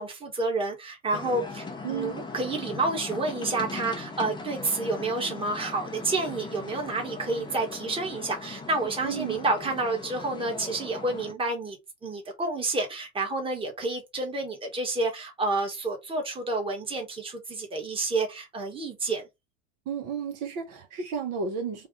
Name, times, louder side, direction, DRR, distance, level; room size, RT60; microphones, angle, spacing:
voice 1, 0.0-11.8 12.0-19.2, right 3 dB, 15° right, 1.4 m, -29 dB
sound 1, 1.1-11.3, left 3 dB, 10° left, 0.6 m, -39 dB
voice 2, 1.8-2.2 9.0-9.4 19.9-21.9, right 6 dB, 50° right, 1.1 m, -32 dB
3.4 x 2.4 x 3.8 m
supercardioid pair, 120°, 37 cm